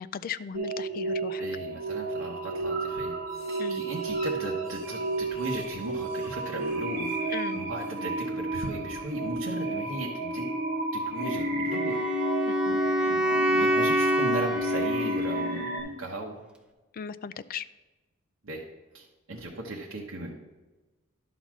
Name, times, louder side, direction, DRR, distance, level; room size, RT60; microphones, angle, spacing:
voice 1, 0.0-1.5 3.6-3.8 7.3-7.6 12.5-12.8 16.9-17.6, left 7 dB, 45° left, 15 dB, 0.3 m, -37 dB
sound 1, 0.5-15.8, right 1 dB, 45° right, 2.4 m, -31 dB
voice 2, 1.4-10.5 10.9-12.0 12.6-16.4 18.4-18.6 18.9-20.3, right 1 dB, 75° right, -2 dB, 1.1 m, -37 dB
Wind instrument woodwind instrument, 11.7-15.8, right 1 dB, 5° right, 0.7 m, -27 dB
11.0 x 4.0 x 6.0 m, 1.1 s
head